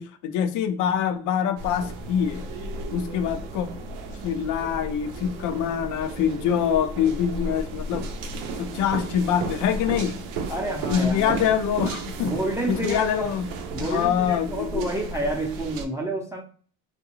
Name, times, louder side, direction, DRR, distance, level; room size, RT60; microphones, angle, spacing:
voice 1, 0.0-2.4 2.9-3.7 4.2-8.1 8.6-10.2 10.9-12.4 12.7-13.5 13.8-14.9, left 8 dB, 60° left, 0.6 m, -25 dB
sound 1, 1.6-15.8, right 3 dB, 75° right, 0.6 m, -34 dB
voice 2, 10.5-11.5 12.2-13.3 13.7-16.4, right 1 dB, 10° right, 0.7 m, -29 dB
2.4 x 2.3 x 3.0 m
supercardioid pair, 75°, 34 cm